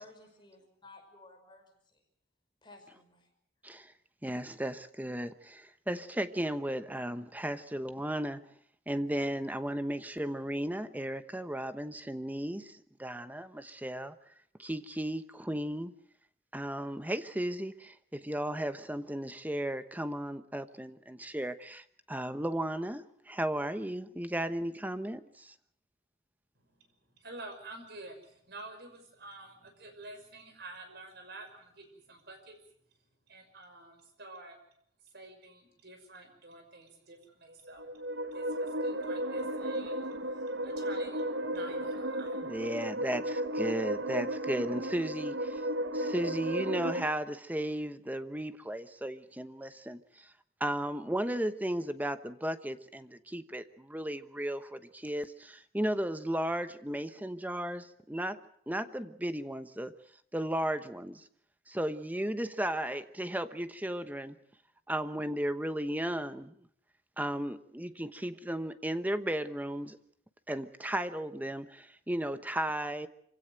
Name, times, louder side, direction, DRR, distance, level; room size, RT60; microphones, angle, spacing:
voice 1, 0.0-2.0 2.6-3.3, left 2 dB, 25° left, 2 dB, 5.6 m, -55 dB
voice 2, 4.2-8.4 8.9-14.1 14.6-15.9 16.5-25.5 42.4-45.6 45.9-50.3 50.6-58.4 58.7-59.9 60.3-61.3 61.7-64.3 64.9-66.5 67.2-70.0 70.5-73.1, right 1 dB, 10° right, 11 dB, 1.0 m, -35 dB
voice 3, 26.6-26.9 27.1-32.6 33.3-34.6 35.0-37.9 38.3-42.4, right 2 dB, 60° right, 6 dB, 5.8 m, -49 dB
sound 1, 37.7-47.1, right 1 dB, 80° right, 1.3 m, -34 dB
25.5 x 16.5 x 7.9 m, 0.66 s
head